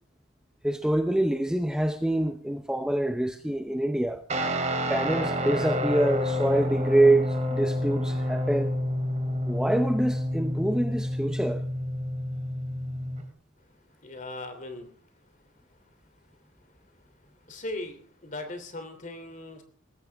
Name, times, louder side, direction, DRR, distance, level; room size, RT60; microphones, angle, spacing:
voice 1, 0.6-4.2 4.9-8.8 9.5-11.7, right 1 dB, 5° right, 0.7 m, -25 dB
Guitar, 4.3-13.2, left 1 dB, 35° right, 2.7 m, -29 dB
voice 2, 14.0-14.9 17.5-19.6, left 2 dB, 40° left, 3.0 m, -38 dB
19.5 x 15.0 x 3.5 m
head